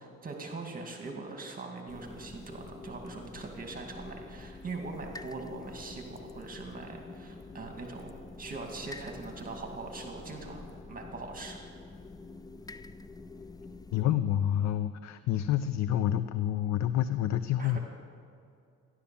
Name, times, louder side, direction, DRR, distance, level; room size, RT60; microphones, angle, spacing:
voice 1, 0.0-8.1 8.4-10.6 10.9-11.6 17.6-17.8, right 3 dB, 30° right, 2 dB, 2.2 m, -41 dB
sound 1, 1.9-14.0, left 3 dB, 15° left, 0.4 m, -47 dB
voice 2, 13.9-17.8, left 11 dB, 65° left, 12 dB, 0.6 m, -28 dB
14.5 x 11.5 x 7.0 m, 2.4 s
cardioid pair, 105°, 30 cm